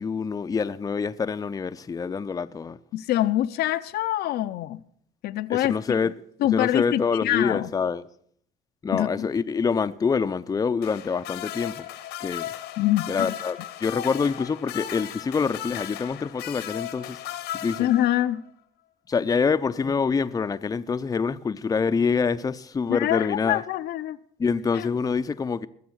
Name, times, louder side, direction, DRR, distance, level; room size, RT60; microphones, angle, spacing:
voice 1, 0.0-2.8 5.5-6.1 6.5-8.1 8.8-11.9 12.2-12.5 13.1-17.2 17.5-17.9 19.1-23.6 24.4-25.7, left 5 dB, 20° left, 0.5 m, -26 dB
voice 2, 2.9-4.8 5.2-5.8 6.4-7.7 8.9-9.3 12.8-13.3 17.8-18.4 22.9-24.2 24.7-24.9, left 13 dB, 70° left, 0.6 m, -25 dB
sound 1, 10.8-18.4 19.7-19.9, left 12 dB, 90° left, 1.3 m, -36 dB
20.5 x 7.4 x 6.3 m
cardioid pair, 110°, 17 cm